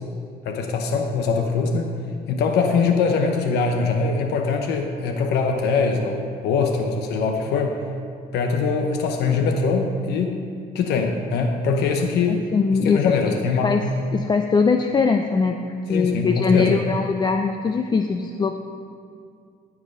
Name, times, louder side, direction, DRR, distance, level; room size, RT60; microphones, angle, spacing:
voice 1, 0.4-1.9 2.3-7.8 8.3-10.4 10.7-12.5 12.8-13.9 15.9-16.8, left 4 dB, 80° left, 4 dB, 0.9 m, -22 dB
voice 2, 12.3-13.4 13.6-13.8 14.1-18.6, left 5 dB, 25° left, 5 dB, 0.4 m, -21 dB
13.0 x 4.8 x 6.5 m, 2.3 s
cardioid pair, 110°, 17 cm